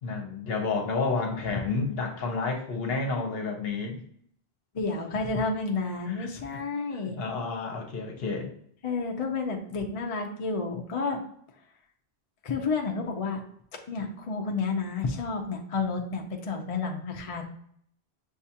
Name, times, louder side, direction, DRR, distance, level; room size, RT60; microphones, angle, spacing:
voice 1, 0.0-4.0 6.1-6.3 7.2-8.5, left 4 dB, 65° left, 2 dB, 1.0 m, -30 dB
voice 2, 4.7-7.2 8.8-11.2 12.4-13.4 13.9-17.4, left 4 dB, 45° left, 2 dB, 0.5 m, -30 dB
6.4 x 2.4 x 2.7 m, 0.65 s
omnidirectional pair, 1.1 m